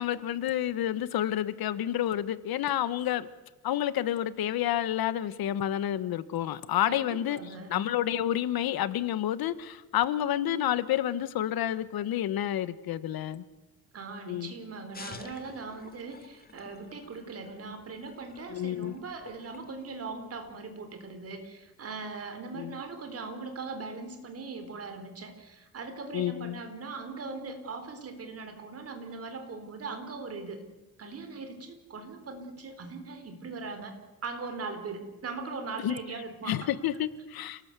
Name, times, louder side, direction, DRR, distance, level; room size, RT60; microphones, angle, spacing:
voice 1, 0.0-3.3 3.6-7.4 7.7-13.4 14.3-14.5 18.5-19.0 22.5-22.8 26.1-26.6 35.8-35.9 36.4-37.6, left 11 dB, 75° left, 15 dB, 1.2 m, -29 dB
voice 2, 6.9-7.8 13.9-30.6 31.0-34.0 34.2-36.7, right 4 dB, 40° right, 7 dB, 3.9 m, -40 dB
sound 1, 14.9-20.6, left 4 dB, 25° left, 1.8 m, -51 dB
28.0 x 18.5 x 8.2 m, 1.2 s
cardioid pair, 165°, 37 cm